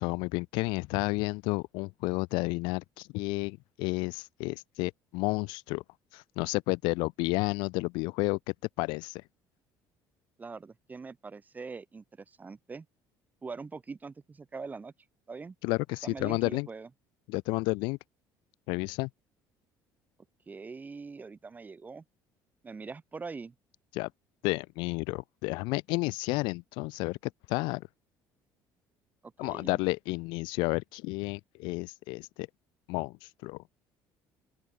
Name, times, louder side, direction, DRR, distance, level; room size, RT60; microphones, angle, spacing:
voice 1, 0.0-5.8 6.1-9.2 15.6-16.7 17.3-18.0 18.7-19.1 23.9-24.1 24.4-27.9 29.4-32.5 32.9-33.6, left 25 dB, 85° left, 0.5 m, -31 dB
voice 2, 10.4-12.9 13.4-14.9 15.3-15.6 16.0-16.9 20.5-22.0 22.6-23.5 29.2-29.8, right 4 dB, 20° right, 6.0 m, -43 dB
open air
cardioid pair, 125°, 8 cm